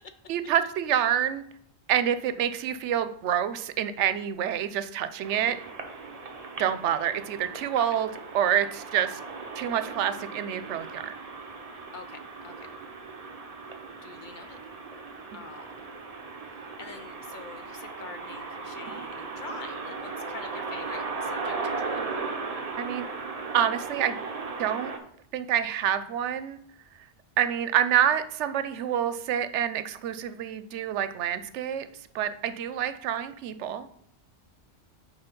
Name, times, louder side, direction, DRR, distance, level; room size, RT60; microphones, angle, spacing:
voice 1, 0.3-1.4 1.9-5.6 6.6-8.1 8.3-9.2 9.5-11.1 22.8-23.1 23.5-24.1 24.6-24.9 25.3-26.6 27.4-31.9 32.1-33.9, right 9 dB, 85° right, 12 dB, 0.9 m, -27 dB
sound 1, 5.2-25.0, right 4 dB, 35° right, 0.8 m, -37 dB
voice 2, 11.9-12.7 14.0-14.6 15.3-15.7 16.8-22.2, left 5 dB, 60° left, 9 dB, 0.5 m, -45 dB
5.6 x 4.6 x 5.3 m, 0.70 s
omnidirectional pair, 1.2 m